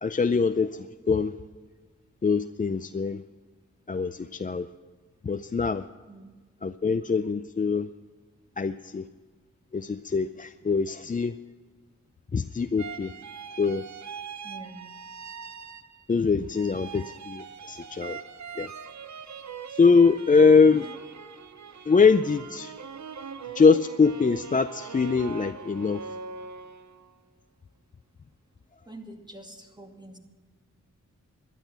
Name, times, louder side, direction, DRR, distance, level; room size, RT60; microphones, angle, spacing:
voice 1, 0.0-1.3 2.2-3.2 3.9-4.7 5.2-5.8 6.6-7.9 8.6-9.0 9.7-11.3 12.3-13.1 13.6-13.8 16.1-18.2 18.6-18.7 19.7-20.8 21.9-22.7 23.5-26.0, left 5 dB, 25° left, 11 dB, 0.5 m, -23 dB
sound 1, 12.8-16.2 16.5-27.1, right 6 dB, 60° right, 0.9 m, -41 dB
voice 2, 14.4-14.8 20.7-20.8 28.9-30.2, right 1 dB, 15° right, 3 dB, 2.4 m, -45 dB
12.5 x 10.0 x 7.3 m, 1.4 s
cardioid pair, 45°, 32 cm